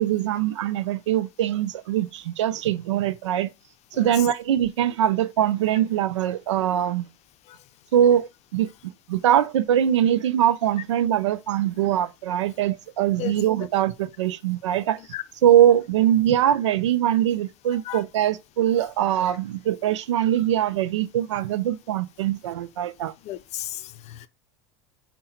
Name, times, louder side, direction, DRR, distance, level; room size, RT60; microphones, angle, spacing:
voice 1, 0.0-3.5 3.9-7.1 7.9-8.7 9.1-15.0 15.4-23.1, right 11 dB, 85° right, 0.5 m, -22 dB
voice 2, 23.2-24.3, left 13 dB, 45° left, 0.5 m, -33 dB
5.5 x 2.2 x 4.2 m
hypercardioid pair, 85°, 15 cm